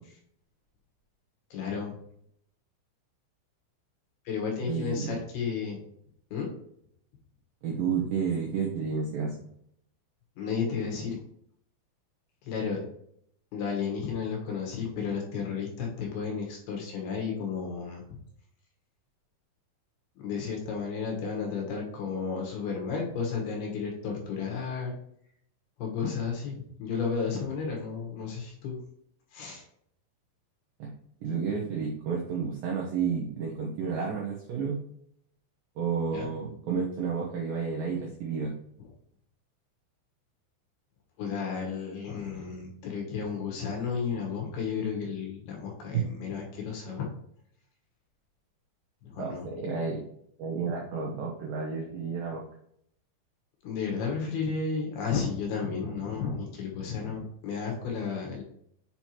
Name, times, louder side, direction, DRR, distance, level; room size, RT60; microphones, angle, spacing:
voice 1, 1.5-1.9 4.3-5.8 6.3-6.5 10.4-11.2 12.4-12.8 13.5-18.2 20.2-25.0 25.8-28.8 29.3-29.6 36.1-36.3 41.2-47.1 49.0-49.5 53.6-58.4, left 5 dB, 70° left, 0 dB, 2.8 m, -33 dB
voice 2, 4.7-5.2 7.6-9.4 30.8-30.9 31.2-34.8 35.8-38.6 49.2-50.1 50.4-52.4, right 5 dB, 90° right, -2 dB, 2.0 m, -31 dB
7.5 x 4.5 x 2.9 m, 0.69 s
omnidirectional pair, 5.3 m